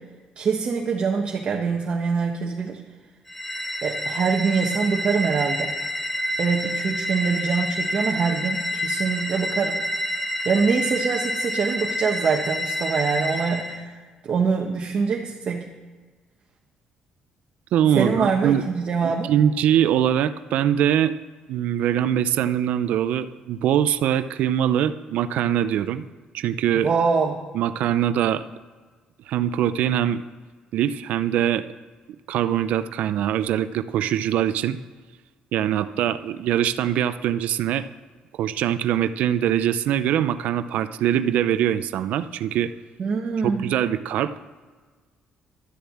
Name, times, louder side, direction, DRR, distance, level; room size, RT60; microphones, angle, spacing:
voice 1, 0.4-2.8 3.8-5.7 6.4-9.8 10.4-15.6 18.0-19.3 26.7-27.4 43.0-43.7, right 5 dB, 45° right, 0 dB, 1.2 m, -24 dB
sound 1, 3.3-13.8, left 1 dB, 5° left, 0.9 m, -28 dB
voice 2, 17.7-18.6 19.0-21.1 21.5-26.1 26.3-26.9 27.5-28.4 29.3-30.2 30.7-31.7 32.3-34.8 35.5-37.9 38.3-42.7 43.4-44.4, right 10 dB, 75° right, 12 dB, 0.5 m, -22 dB
12.5 x 6.8 x 8.6 m, 1.4 s
cardioid pair, 135°, 2 cm